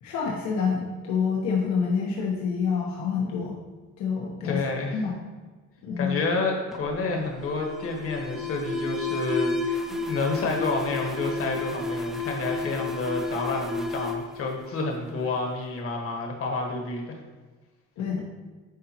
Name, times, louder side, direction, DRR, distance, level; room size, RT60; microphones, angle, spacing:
voice 1, 0.0-3.6 4.0-4.6 4.9-5.2 5.8-6.2 18.0-18.2, left 6 dB, 75° left, -2 dB, 1.1 m, -27 dB
voice 2, 4.4-5.0 6.0-17.2, left 3 dB, 50° left, 1 dB, 1.4 m, -29 dB
Alarm, 6.7-15.3, left 2 dB, ahead, 0.5 m, -32 dB
10.0 x 3.9 x 2.9 m, 1.3 s
cardioid pair, 120°, 29 cm